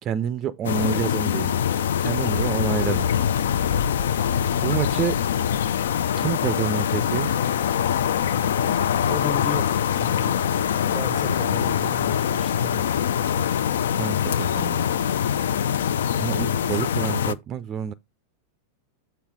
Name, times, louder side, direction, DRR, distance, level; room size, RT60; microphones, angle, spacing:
voice 1, 0.0-1.6 2.0-3.1 4.6-5.2 6.1-7.3 13.9-14.9 16.2-17.9, right 8 dB, 30° right, 0.4 m, -28 dB
sound 1, 0.6-17.3, left 9 dB, 60° left, 0.4 m, -23 dB
Wind instrument woodwind instrument, 8.9-13.0, left 7 dB, 80° left, 1.7 m, -43 dB
voice 2, 9.1-10.4 10.9-12.8, left 2 dB, ahead, 0.8 m, -35 dB
7.1 x 4.4 x 4.8 m
figure-of-eight pair, 90°, 0 cm